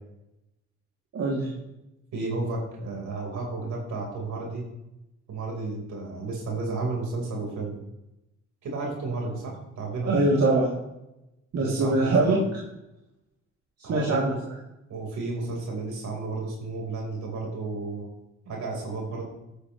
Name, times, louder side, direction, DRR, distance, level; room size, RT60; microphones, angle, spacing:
voice 1, 1.1-1.5 10.1-10.7 11.5-12.4 13.9-14.5, right 2 dB, 55° right, -5 dB, 2.9 m, -23 dB
voice 2, 2.1-4.7 5.3-7.8 8.6-10.1 11.6-12.4 13.8-14.2 14.9-18.1 18.5-19.2, right 3 dB, 70° right, -1 dB, 4.4 m, -32 dB
16.0 x 8.8 x 3.2 m, 0.91 s
cardioid pair, 90°, 30 cm